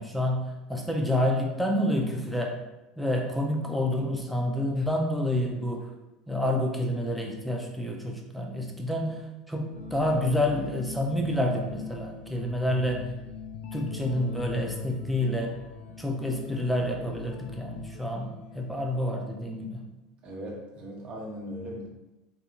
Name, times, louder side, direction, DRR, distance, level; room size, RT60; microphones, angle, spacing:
voice 1, 0.0-2.6 3.0-5.9 6.3-9.2 9.5-13.1 13.7-15.5 16.0-19.9, left 1 dB, ahead, 0 dB, 0.6 m, -28 dB
sound 1, 9.7-19.3, left 6 dB, 55° left, 0.4 m, -42 dB
voice 2, 20.2-21.9, equal, 35° right, -2 dB, 1.0 m, -39 dB
3.3 x 2.7 x 2.5 m, 0.99 s
figure-of-eight pair, 70°, 3 cm